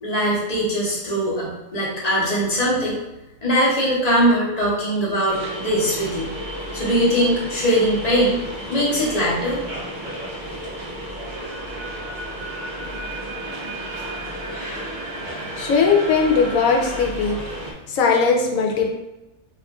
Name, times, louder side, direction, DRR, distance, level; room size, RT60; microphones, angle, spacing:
voice 1, 0.0-3.0 3.4-6.3 6.7-8.4 8.7-9.6, equal, 35° left, -6 dB, 0.8 m, -21 dB
sound 1, 5.3-17.7, equal, 65° right, 0.4 m, -33 dB
sound 2, 11.3-17.1, right 2 dB, 90° right, 1.2 m, -36 dB
voice 2, 15.6-17.4 17.9-18.9, left 5 dB, 75° left, 1 dB, 1.0 m, -19 dB
2.9 x 2.4 x 3.5 m, 0.97 s
omnidirectional pair, 1.5 m